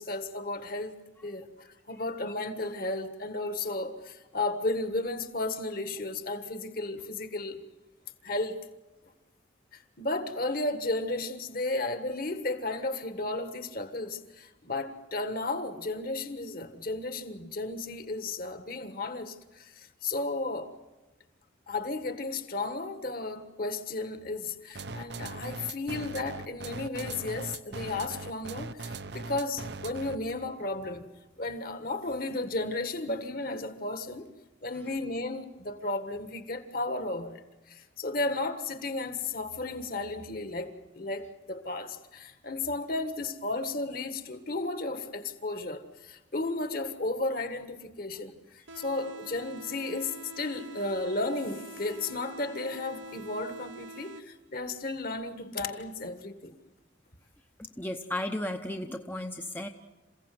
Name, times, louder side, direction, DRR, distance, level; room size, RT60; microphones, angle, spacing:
voice 1, 0.0-7.6 8.2-8.6 9.7-20.7 21.7-31.1 31.4-34.3 34.6-48.4 48.7-56.5, left 2 dB, 45° left, 1.6 m, -34 dB
sound 1, 24.8-30.3, right 3 dB, 55° right, 0.7 m, -39 dB
sound 2, 48.7-54.7, right 3 dB, 75° right, 1.0 m, -46 dB
voice 2, 57.6-59.7, left 1 dB, 10° left, 0.8 m, -34 dB
28.0 x 16.0 x 7.8 m
head